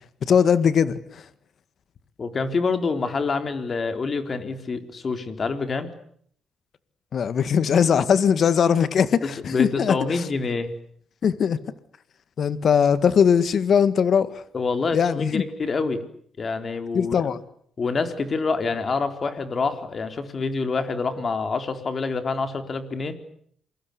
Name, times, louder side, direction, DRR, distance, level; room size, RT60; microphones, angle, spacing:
voice 1, 0.2-1.2 7.1-10.2 11.2-11.6 12.4-14.4 14.9-15.4 16.9-17.4, left 7 dB, 55° left, 14 dB, 1.8 m, -20 dB
voice 2, 2.2-5.9 9.5-10.7 14.5-16.0 16.4-17.3 17.8-23.1, left 4 dB, 40° left, 8 dB, 4.0 m, -26 dB
28.0 x 23.5 x 8.4 m, 0.64 s
cardioid pair, 90°, 0 cm